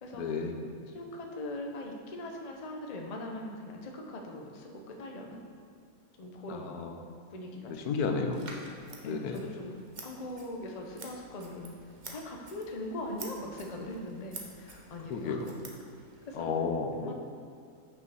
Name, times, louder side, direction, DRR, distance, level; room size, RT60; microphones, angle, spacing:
voice 1, 0.1-0.6 6.5-7.0 7.7-8.5 9.0-9.4 15.1-15.5 16.3-17.1, left 4 dB, 80° left, 4 dB, 1.2 m, -32 dB
voice 2, 0.9-5.4 6.2-6.7 7.3-7.9 9.0-9.8 10.0-11.7 12.0-15.4 16.3-16.5 16.9-17.1, left 1 dB, 40° left, 1 dB, 0.6 m, -41 dB
Scissors, 8.3-16.3, right 3 dB, 40° right, 0.8 m, -49 dB
6.0 x 5.5 x 6.1 m, 2.3 s
omnidirectional pair, 1.6 m